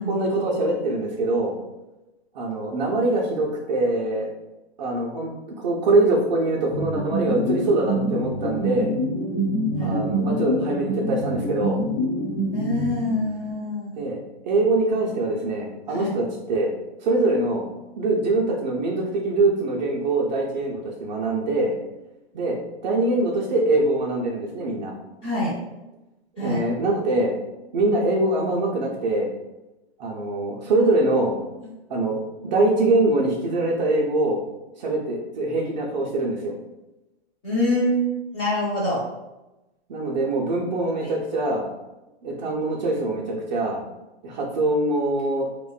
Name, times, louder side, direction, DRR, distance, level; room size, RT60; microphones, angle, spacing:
voice 1, 0.0-1.6 2.3-4.3 4.8-8.9 9.8-11.8 14.0-14.2 14.4-16.7 17.0-17.7 18.0-21.7 22.3-22.6 22.8-24.9 26.4-27.3 27.7-29.3 30.0-31.4 31.9-34.4 34.8-36.5 39.9-41.7 42.2-43.8 44.2-45.5, right 2 dB, 45° right, -2 dB, 0.4 m, -23 dB
sound 1, 6.7-13.4, equal, 45° left, 1.0 m, -26 dB
voice 2, 9.7-10.3 12.5-14.0 15.9-16.1 25.2-25.6 26.4-26.6 37.4-39.0 41.0-41.1, left 1 dB, 15° left, -6 dB, 0.7 m, -25 dB
2.5 x 2.1 x 2.3 m, 0.99 s
hypercardioid pair, 140°, 33 cm